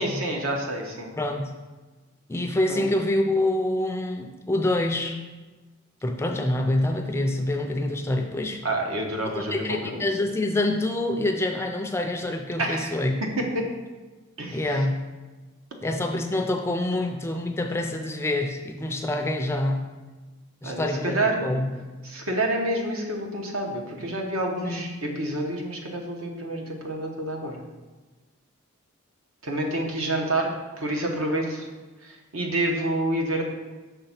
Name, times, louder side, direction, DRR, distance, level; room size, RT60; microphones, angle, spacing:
voice 1, 0.0-1.1 2.7-2.9 8.6-10.0 12.6-12.9 13.4-13.6 14.4-14.6 20.6-21.5 22.0-27.6 29.4-31.7 32.0-33.4, right 1 dB, 75° right, 1 dB, 1.0 m, -28 dB
voice 2, 1.2-1.5 2.3-5.2 6.0-8.6 9.3-13.2 14.5-14.9 15.8-19.9 20.6-21.7 24.6-24.9, left 1 dB, 10° left, 4 dB, 0.3 m, -26 dB
5.7 x 3.5 x 5.7 m, 1.2 s
head